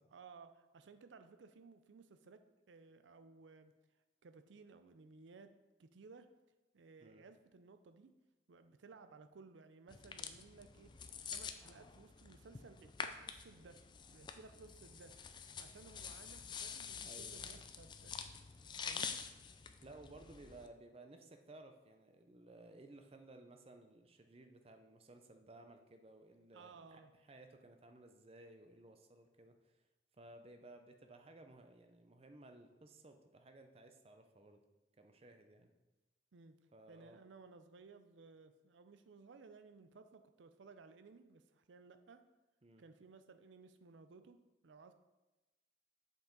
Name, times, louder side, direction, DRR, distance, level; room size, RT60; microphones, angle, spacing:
voice 1, 0.1-3.7 4.2-6.3 6.7-8.1 8.5-10.9 11.3-13.8 14.1-15.1 15.6-18.5 18.9-19.2 26.5-27.1 36.3-36.6 36.9-42.2 42.8-44.9, right 4 dB, 90° right, 9 dB, 0.5 m, -59 dB
sound 1, 9.9-20.7, left 6 dB, 25° left, 0.3 m, -47 dB
voice 2, 17.0-17.7 19.8-29.8 30.2-34.6 35.0-35.7 36.7-37.2 42.6-42.8, right 2 dB, 35° right, 6 dB, 0.6 m, -58 dB
7.3 x 5.4 x 3.9 m, 1.1 s
head